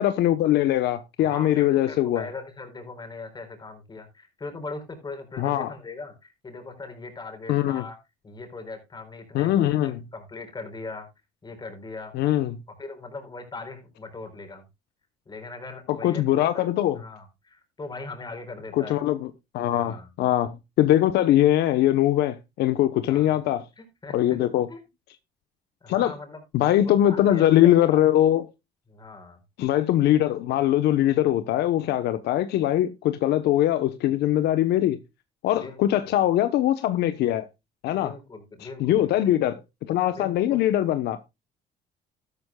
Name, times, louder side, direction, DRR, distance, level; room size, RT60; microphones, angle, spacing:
voice 1, 0.0-2.3 5.4-5.7 7.5-7.8 9.3-10.0 12.1-12.6 15.9-17.0 18.7-23.6 24.1-24.7 25.9-26.1 26.5-28.4 29.6-35.0 35.4-37.5 37.8-38.1 38.8-39.6 39.9-41.2, left 13 dB, 75° left, 1.0 m, -22 dB
voice 2, 1.2-8.0 8.2-9.5 9.8-11.1 11.4-12.3 12.8-14.6 15.3-16.7 16.9-19.0 19.7-20.1 23.1-23.4 23.8-24.4 24.7-24.8 25.8-26.4 26.8-28.0 28.9-29.4 35.5-36.1 38.0-39.1 40.1-40.6, left 3 dB, 25° left, 4.3 m, -40 dB
12.5 x 12.0 x 2.3 m
cardioid pair, 110°, 17 cm